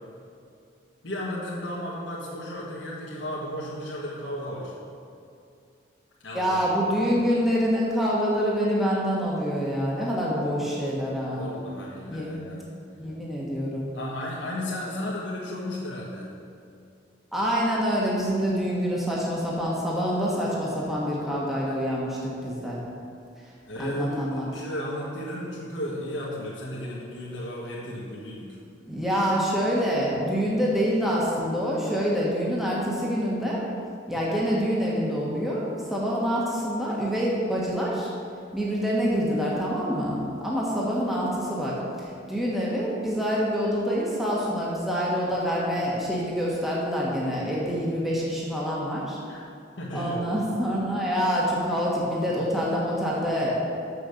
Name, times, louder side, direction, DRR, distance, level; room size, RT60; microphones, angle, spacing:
voice 1, 1.0-4.7 6.2-7.1 11.3-12.8 13.9-16.3 23.7-28.6 49.3-49.4 49.8-50.4, left 1 dB, 75° left, -6 dB, 1.5 m, -34 dB
voice 2, 6.3-11.5 12.1-12.3 13.0-13.9 17.3-22.8 23.8-24.5 28.9-33.6 34.1-38.1 38.5-49.2 49.9-53.6, equal, ahead, -6 dB, 1.3 m, -26 dB
6.9 x 6.5 x 6.6 m, 2.5 s
head